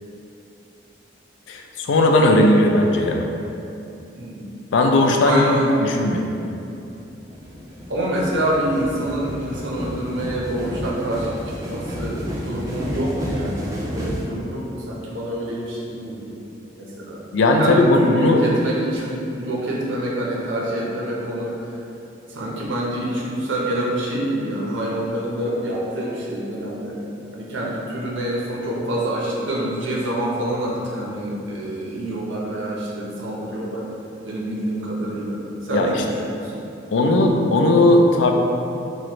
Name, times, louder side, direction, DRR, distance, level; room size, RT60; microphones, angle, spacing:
voice 1, 1.5-3.3 4.7-5.4 5.8-6.3 17.3-18.4 35.7-36.0 36.9-38.3, left 2 dB, 80° left, 2 dB, 0.3 m, -17 dB
voice 2, 4.1-4.5 5.2-5.7 6.6-6.7 7.9-16.4 16.8-17.2 17.6-21.7 22.3-27.0 27.3-33.8 34.2-36.6, right 1 dB, 85° right, -4 dB, 0.6 m, -26 dB
sound 1, 6.9-14.3, equal, 15° right, 0.3 m, -31 dB
3.1 x 2.5 x 2.9 m, 2.8 s
head